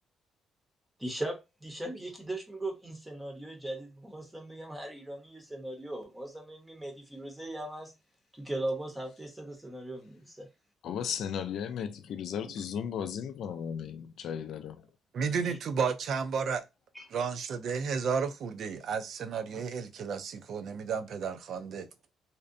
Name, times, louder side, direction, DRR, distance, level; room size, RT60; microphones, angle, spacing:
voice 1, 1.0-7.9 8.4-10.5 15.4-15.6 16.9-17.1 19.5-19.6, right 1 dB, 10° right, 0.7 m, -39 dB
voice 2, 10.8-14.8, left 8 dB, 75° left, 0.4 m, -35 dB
voice 3, 15.1-16.6 17.1-21.9, right 6 dB, 65° right, 0.4 m, -32 dB
2.6 x 2.1 x 2.5 m
cardioid pair, 90°, 0 cm